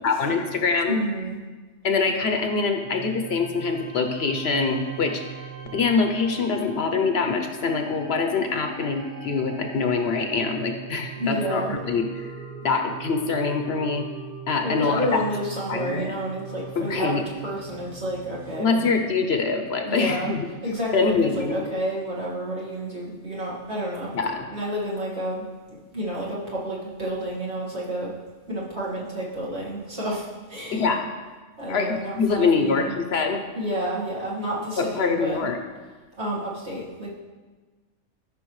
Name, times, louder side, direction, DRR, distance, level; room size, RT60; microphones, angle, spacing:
voice 1, 0.0-1.0 1.8-5.4 5.7-12.3 12.6-14.0 14.5-15.2 15.7-16.1 16.8-17.2 18.6-20.4 20.9-21.6 24.1-24.4 30.7-31.1 31.7-33.4 34.8-35.6, left 4 dB, 60° left, 5 dB, 0.9 m, -24 dB
voice 2, 0.9-1.4 11.2-11.8 14.6-18.8 19.8-20.4 20.6-28.1 28.5-30.9 31.6-32.9 33.5-35.5 36.2-37.1, equal, 60° right, -7 dB, 2.2 m, -30 dB
sound 1, 2.8-18.6, right 4 dB, 30° right, 2.3 m, -40 dB
13.0 x 5.8 x 3.1 m, 1.3 s
omnidirectional pair, 1.3 m